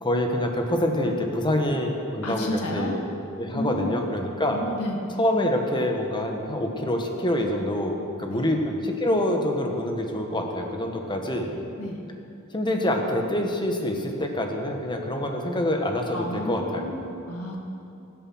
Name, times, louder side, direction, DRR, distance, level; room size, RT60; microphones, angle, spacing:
voice 1, 0.0-3.0 3.4-4.6 5.2-11.5 12.5-16.8, left 1 dB, 20° left, 3 dB, 1.4 m, -26 dB
voice 2, 2.2-3.0 3.5-3.9 4.5-5.0 8.3-8.5 11.8-12.0 16.1-17.6, left 1 dB, 90° left, 1 dB, 2.0 m, -31 dB
20.0 x 7.8 x 6.3 m, 2.7 s
head